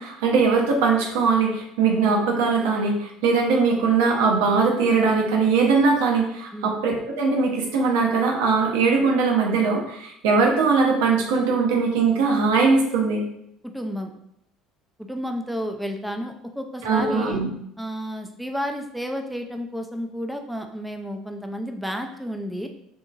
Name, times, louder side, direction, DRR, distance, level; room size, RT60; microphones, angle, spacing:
voice 1, 0.0-13.2 16.8-17.5, right 4 dB, 75° right, 0 dB, 0.6 m, -21 dB
voice 2, 13.6-14.1 15.1-17.4 17.8-22.7, equal, 5° right, 4 dB, 0.4 m, -31 dB
2.8 x 2.7 x 2.4 m, 0.75 s
hypercardioid pair, 70°, 0 cm